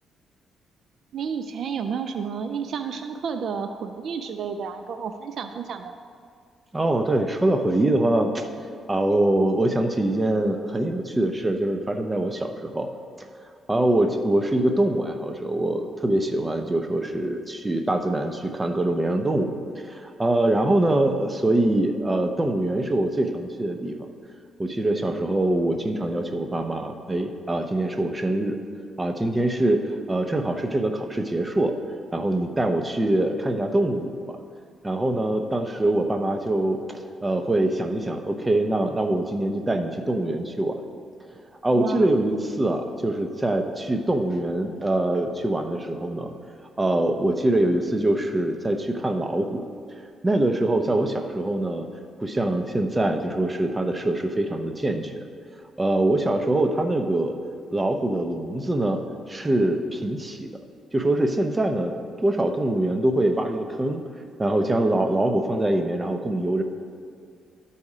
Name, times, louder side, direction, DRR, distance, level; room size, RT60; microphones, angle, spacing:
voice 1, 1.1-6.0 41.7-42.1, right 6 dB, 60° right, 8 dB, 0.4 m, -31 dB
voice 2, 6.7-8.4 8.9-12.9 13.7-19.5 19.8-24.0 24.6-28.6 29.0-31.7 32.1-34.4 34.8-40.8 41.6-46.3 46.8-49.6 50.2-51.9 52.2-55.2 55.8-57.3 57.7-59.0 59.3-60.5 60.9-61.9 62.2-64.0 64.4-66.6, right 1 dB, 20° right, 6 dB, 0.7 m, -24 dB
12.0 x 4.2 x 4.9 m, 2.2 s
cardioid pair, 90°, 0 cm